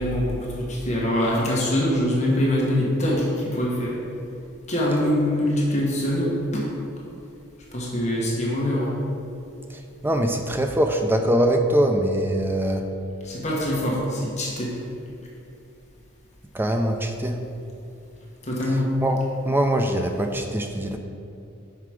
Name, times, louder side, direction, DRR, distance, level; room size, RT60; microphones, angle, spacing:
voice 1, 0.0-4.0 4.7-6.7 7.7-9.0 13.2-14.7 18.4-18.9, left 1 dB, 35° left, -4 dB, 1.2 m, -24 dB
voice 2, 9.7-12.9 16.5-17.4 19.0-21.0, right 1 dB, 10° right, 4 dB, 0.4 m, -23 dB
5.8 x 4.7 x 4.8 m, 2.6 s
head